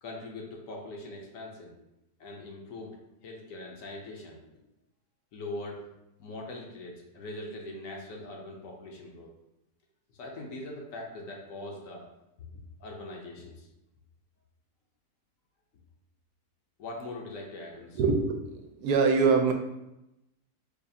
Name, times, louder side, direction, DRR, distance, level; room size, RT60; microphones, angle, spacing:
voice 1, 0.0-1.8 2.2-4.4 5.3-5.9 6.2-9.3 10.2-12.1 12.4-12.5 12.8-13.7 16.8-18.0, left 2 dB, 65° left, 0 dB, 1.0 m, -41 dB
voice 2, 18.0-19.5, right 4 dB, 90° right, 4 dB, 1.1 m, -24 dB
4.8 x 2.4 x 2.7 m, 0.89 s
omnidirectional pair, 1.6 m